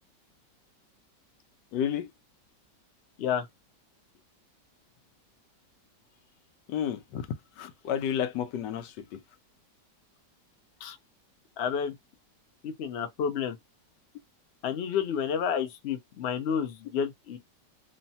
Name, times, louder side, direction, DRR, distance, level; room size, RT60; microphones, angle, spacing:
voice 1, 1.7-2.1 6.7-7.3 7.6-9.2, left 9 dB, 80° left, 1.2 m, -31 dB
voice 2, 11.6-11.9 12.6-13.6 14.6-17.4, left 7 dB, 65° left, 0.6 m, -30 dB
3.1 x 2.1 x 2.7 m
omnidirectional pair, 1.9 m